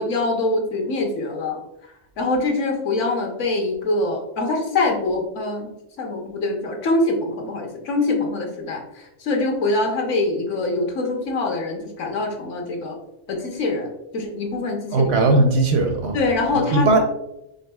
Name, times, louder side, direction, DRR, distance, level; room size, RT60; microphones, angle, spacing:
voice 1, 0.0-1.6 2.2-5.7 6.0-13.0 13.3-15.1 16.1-16.9, left 2 dB, 70° left, 2 dB, 1.2 m, -24 dB
voice 2, 14.9-16.2 16.5-17.0, right 2 dB, 65° right, 5 dB, 0.7 m, -18 dB
5.1 x 3.5 x 2.2 m, 0.86 s
omnidirectional pair, 1.4 m